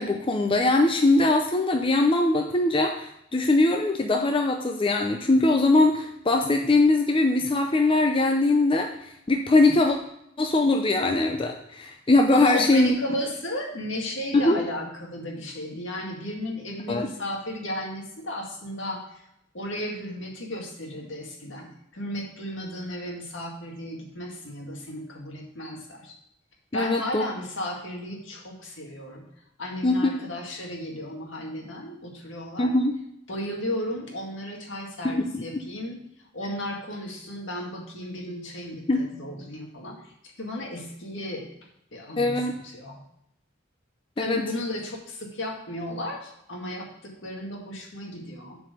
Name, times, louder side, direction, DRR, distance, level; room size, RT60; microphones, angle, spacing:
voice 1, 0.0-8.9 9.3-10.0 10.4-12.9 14.3-14.6 16.9-17.1 26.7-27.2 29.8-30.1 32.6-33.0 35.0-35.6 38.9-39.1 42.2-42.5 44.2-44.4, left 2 dB, 25° left, 3 dB, 0.6 m, -21 dB
voice 2, 12.3-19.2 19.5-26.1 26.7-29.2 29.6-32.7 33.3-36.0 36.3-40.0 40.4-41.5 41.9-42.5 42.7-43.0 44.2-48.6, left 1 dB, 70° left, 0 dB, 2.0 m, -34 dB
7.5 x 4.8 x 6.8 m, 0.78 s
head